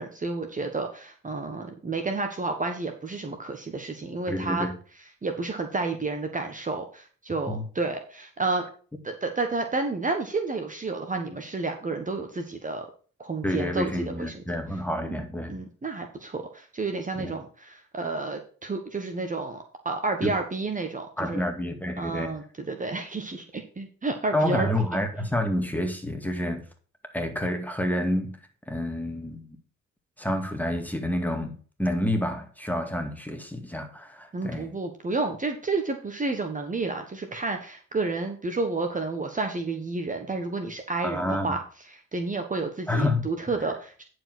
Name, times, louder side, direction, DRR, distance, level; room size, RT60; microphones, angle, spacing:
voice 1, 0.0-4.7 5.2-8.7 9.0-12.9 13.2-14.3 15.0-15.2 15.5-21.4 22.0-24.7 34.3-41.6 41.9-44.0, right 3 dB, 25° right, 5 dB, 1.3 m, -30 dB
voice 2, 4.3-4.7 7.5-7.6 13.4-15.6 17.2-17.3 20.2-20.3 21.2-22.3 24.3-26.6 27.1-28.4 28.7-29.5 30.2-34.7 41.0-41.6 42.9-43.3, left 1 dB, 5° left, 5 dB, 2.1 m, -28 dB
10.0 x 4.8 x 6.1 m, 0.41 s
cardioid pair, 90°, 30 cm